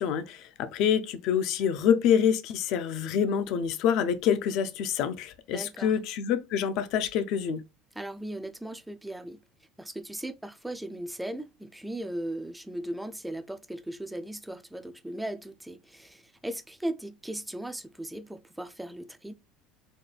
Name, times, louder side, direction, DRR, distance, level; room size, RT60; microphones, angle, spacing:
voice 1, 0.0-7.6, left 8 dB, 60° left, 0.5 m, -26 dB
voice 2, 5.5-5.9 7.9-9.4 9.8-19.3, right 1 dB, 5° right, 0.3 m, -37 dB
4.2 x 2.2 x 3.2 m
cardioid pair, 135°, 0 cm